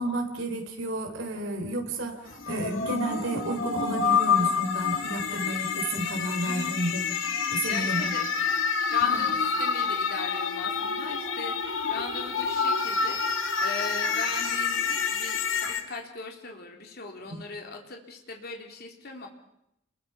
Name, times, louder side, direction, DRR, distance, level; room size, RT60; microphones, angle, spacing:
voice 1, 0.0-7.1 7.5-8.1 9.1-9.2 17.3-17.4, right 1 dB, 75° right, 3 dB, 3.8 m, -31 dB
sound 1, 2.3-15.8, left 5 dB, 85° left, 2.5 m, -28 dB
voice 2, 6.4-6.7 7.6-8.2 8.9-19.3, left 3 dB, 55° left, 2 dB, 3.4 m, -39 dB
29.5 x 22.0 x 5.8 m, 0.82 s
head